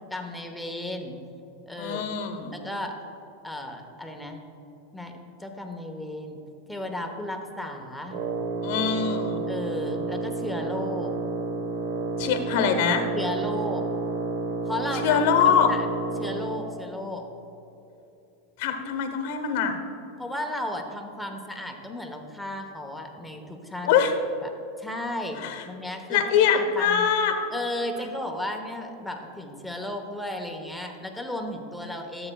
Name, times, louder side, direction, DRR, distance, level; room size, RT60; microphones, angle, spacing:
voice 1, 0.1-1.2 1.7-2.0 2.5-3.0 3.4-4.4 4.9-5.1 5.4-6.4 6.7-8.2 9.5-11.1 13.1-13.8 14.7-15.9 16.2-17.3 20.2-23.9 24.4-24.5 24.8-27.1 27.5-32.3, left 1 dB, 5° left, 3 dB, 1.0 m, -34 dB
voice 2, 1.8-2.5 8.6-9.4 12.2-13.1 14.9-15.7 18.6-19.8 23.8-24.1 25.4-25.6 26.1-27.4, left 7 dB, 65° left, 7 dB, 1.0 m, -23 dB
Wind instrument woodwind instrument, 8.1-16.7, right 4 dB, 55° right, 1.4 m, -30 dB
13.5 x 7.8 x 2.3 m, 2.9 s
hypercardioid pair, 100°, 0 cm